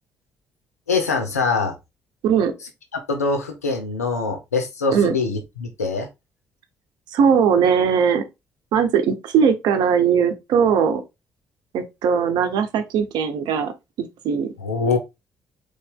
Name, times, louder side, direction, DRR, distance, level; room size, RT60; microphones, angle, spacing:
voice 1, 0.9-1.8 3.1-6.1 14.6-15.0, left 4 dB, 90° left, 0.7 m, -23 dB
voice 2, 7.1-8.2 8.7-11.0 11.7-13.7 14.0-14.5, right 7 dB, 65° right, 0.8 m, -19 dB
4.1 x 3.2 x 3.5 m
figure-of-eight pair, 45°, 8 cm